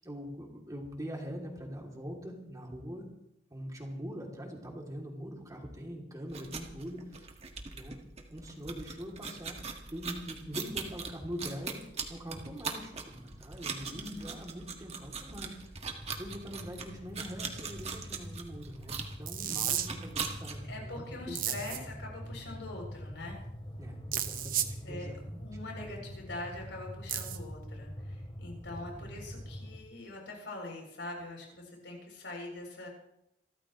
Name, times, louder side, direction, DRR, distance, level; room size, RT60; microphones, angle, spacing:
voice 1, 0.0-3.0 3.5-7.3 7.7-7.9 8.3-9.6 9.9-11.8 12.1-15.6 16.2-21.9 23.8-25.5, equal, 20° right, 0 dB, 2.9 m, -43 dB
sound 1, 6.3-20.6, right 5 dB, 35° right, 1.8 m, -41 dB
voice 2, 13.9-14.3 20.7-23.4 24.8-25.1 25.4-32.9, left 2 dB, 80° left, 0 dB, 7.4 m, -43 dB
sound 2, 15.8-29.8, equal, 25° left, 2.6 m, -45 dB
sound 3, 19.3-19.9 21.4-21.8 24.1-24.7 27.1-27.4, right 11 dB, 50° right, 1.1 m, -32 dB
27.5 x 14.0 x 3.2 m, 0.79 s
head